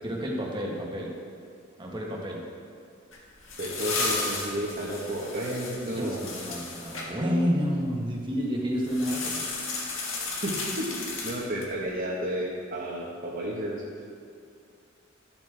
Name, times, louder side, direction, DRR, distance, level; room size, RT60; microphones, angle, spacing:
voice 1, 0.0-1.1 1.8-2.4 5.8-9.4, equal, 25° right, -2 dB, 1.5 m, -29 dB
sound 1, 3.1-7.1 8.8-11.8, left 3 dB, 70° left, 1.6 m, -34 dB
voice 2, 3.6-6.3 10.4-13.8, right 1 dB, 50° right, -5 dB, 1.3 m, -32 dB
13.0 x 7.3 x 3.4 m, 2.3 s
head